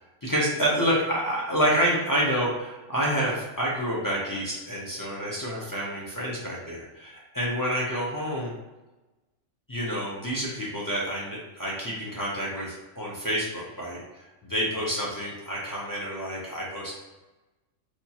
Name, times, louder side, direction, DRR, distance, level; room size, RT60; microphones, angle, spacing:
voice 1, 0.2-8.5 9.7-14.0 14.4-16.9, equal, 30° left, -6 dB, 0.4 m, -28 dB
4.4 x 2.3 x 2.8 m, 1.1 s
omnidirectional pair, 1.3 m